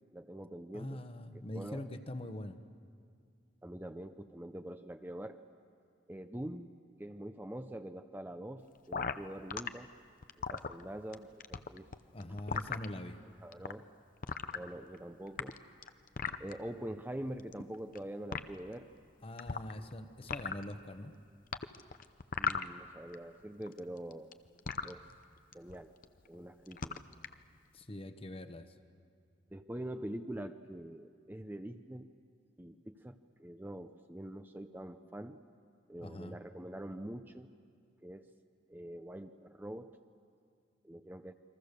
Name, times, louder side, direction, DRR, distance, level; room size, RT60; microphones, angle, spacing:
voice 1, 0.1-1.0 1.5-1.9 3.6-5.4 6.1-6.7 7.0-9.9 10.4-11.9 12.5-12.6 13.4-13.9 14.5-15.6 16.4-18.9 19.5-19.9 22.4-24.4 24.8-25.1 25.5-26.0 26.3-27.0 29.5-32.1 32.6-35.4 35.9-37.5 38.0-38.3 38.7-40.0 40.8-41.3, right 1 dB, 10° right, 8 dB, 0.6 m, -44 dB
voice 2, 0.7-2.6 12.1-13.2 19.2-21.1 27.7-28.7 36.0-36.4, left 1 dB, 30° left, 9 dB, 1.1 m, -43 dB
sound 1, 8.9-9.7 10.2-11.1 11.4-12.9 13.5-13.7 14.2-15.0 15.3-16.5 17.4-18.0 18.3-18.4 19.4-19.9 20.2-20.7 21.5-23.1 23.4-24.9 25.5-25.8 26.0-26.4 26.7-27.3, left 6 dB, 50° left, 0.7 m, -37 dB
29.0 x 23.0 x 6.8 m, 2.3 s
head